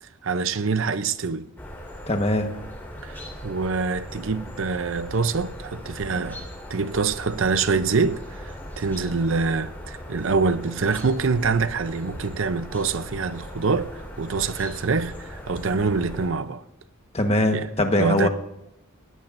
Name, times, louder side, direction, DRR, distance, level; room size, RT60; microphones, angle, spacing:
voice 1, 0.0-1.5 3.0-16.6 17.5-17.7 18.0-18.3, right 4 dB, 60° right, 0.6 m, -25 dB
sound 1, 1.6-16.3, equal, 10° left, 4.3 m, -39 dB
voice 2, 2.1-2.5 17.1-18.3, left 1 dB, 30° left, 1.3 m, -22 dB
20.0 x 16.0 x 2.6 m
head